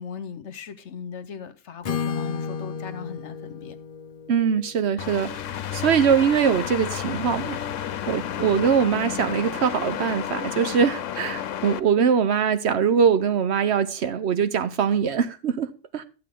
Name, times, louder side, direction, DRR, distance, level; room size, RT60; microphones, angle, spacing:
voice 1, 0.0-3.8, left 7 dB, 65° left, 1.2 m, -38 dB
Acoustic guitar / Strum, 1.8-5.8, left 6 dB, 50° left, 0.5 m, -33 dB
voice 2, 4.3-5.3 5.7-7.6 8.1-16.0, right 7 dB, 65° right, 1.0 m, -22 dB
sound 1, 5.0-11.8, left 10 dB, 85° left, 1.0 m, -31 dB
12.0 x 7.6 x 3.7 m
omnidirectional pair, 1.3 m